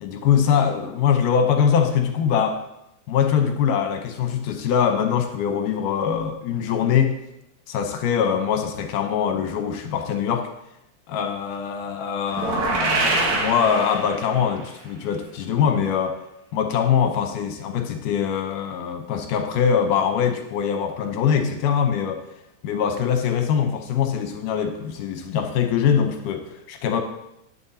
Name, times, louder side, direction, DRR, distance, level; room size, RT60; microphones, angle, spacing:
voice 1, 0.0-2.6 3.1-7.2 7.7-10.5 11.1-16.2 16.5-22.2 22.6-27.0, left 7 dB, 70° left, 5 dB, 2.2 m, -23 dB
sound 1, 12.3-14.5, right 3 dB, 80° right, 3.3 m, -24 dB
12.0 x 9.2 x 2.8 m, 0.85 s
omnidirectional pair, 4.3 m